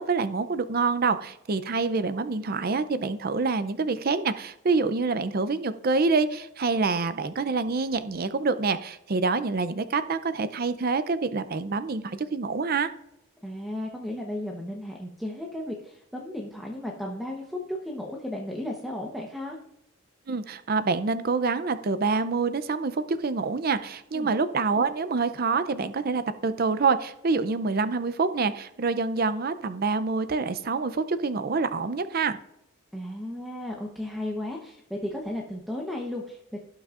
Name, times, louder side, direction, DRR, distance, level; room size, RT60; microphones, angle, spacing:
voice 1, 0.0-12.9 20.3-32.4, right 4 dB, 45° right, 13 dB, 0.5 m, -26 dB
voice 2, 13.4-19.6 24.1-24.3 32.9-36.6, left 1 dB, ahead, -2 dB, 0.9 m, -34 dB
17.5 x 6.1 x 2.5 m, 0.82 s
head